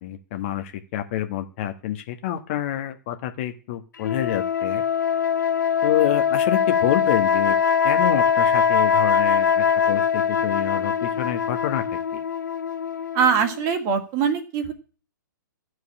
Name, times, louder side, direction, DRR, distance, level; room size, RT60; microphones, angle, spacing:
voice 1, 0.0-4.8 5.8-7.6 7.8-12.2, left 12 dB, 35° left, 8 dB, 1.3 m, -28 dB
sound 1, 4.0-13.7, left 7 dB, 65° left, 0.9 m, -22 dB
voice 2, 13.1-14.7, right 7 dB, 30° right, 6 dB, 1.8 m, -22 dB
14.0 x 4.9 x 8.5 m, 0.38 s
figure-of-eight pair, 115°, 11 cm